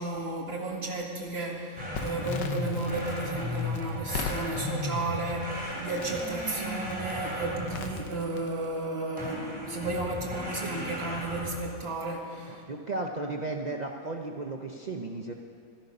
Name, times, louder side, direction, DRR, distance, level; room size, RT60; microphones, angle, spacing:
voice 1, 0.0-12.6, right 2 dB, 35° right, -1 dB, 2.0 m, -33 dB
sound 1, 1.8-8.2 9.2-11.7, left 1 dB, 5° right, 3.8 m, -35 dB
Crackle, 1.9-8.8, left 6 dB, 80° left, 1.6 m, -42 dB
voice 2, 12.5-15.3, right 2 dB, 75° right, 1 dB, 0.4 m, -35 dB
13.5 x 13.5 x 5.4 m, 2.3 s
omnidirectional pair, 1.9 m